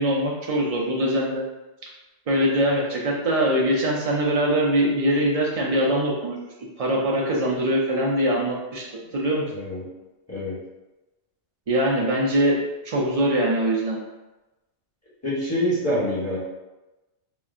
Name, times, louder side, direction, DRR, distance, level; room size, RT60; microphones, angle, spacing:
voice 1, 0.0-1.4 2.3-6.4 6.8-9.5 11.7-12.6 12.8-14.0, right 1 dB, 45° right, -2 dB, 0.5 m, -22 dB
voice 2, 9.5-9.8 10.3-10.6 15.2-16.4, equal, 15° left, -9 dB, 0.9 m, -25 dB
3.9 x 2.1 x 2.4 m, 1.0 s
omnidirectional pair, 1.2 m